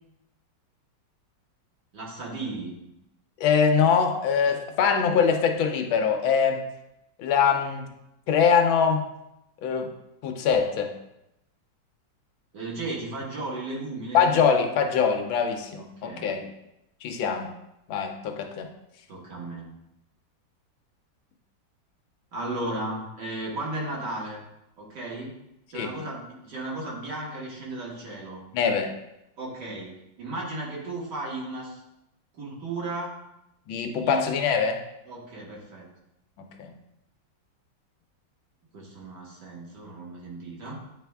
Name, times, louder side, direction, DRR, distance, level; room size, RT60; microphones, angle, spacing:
voice 1, 1.9-2.8 12.5-14.4 15.8-16.4 19.1-19.7 22.3-24.4 24.8-25.4 25.7-28.4 29.4-29.9 30.2-31.8 32.3-33.1 33.8-34.2 35.1-35.9 38.7-40.8, right 2 dB, 60° right, -4 dB, 2.0 m, -35 dB
voice 2, 3.4-6.6 7.2-7.8 8.3-9.1 9.6-9.9 10.2-10.9 14.1-16.5 17.0-17.5 17.9-18.7 25.7-25.9 28.5-28.9 33.7-34.8 36.4-36.7, left 6 dB, 85° left, 5 dB, 1.5 m, -23 dB
8.8 x 3.4 x 3.4 m, 0.86 s
omnidirectional pair, 2.1 m